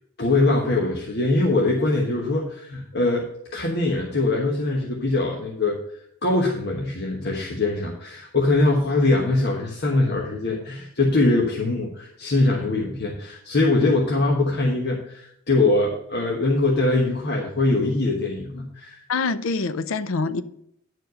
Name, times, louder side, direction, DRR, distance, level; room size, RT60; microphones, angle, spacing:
voice 1, 0.2-3.3 3.5-5.8 6.2-19.0, left 2 dB, 50° left, 1.2 m, -22 dB
voice 2, 19.1-20.4, left 4 dB, 70° left, 0.5 m, -25 dB
10.0 x 4.8 x 6.3 m
head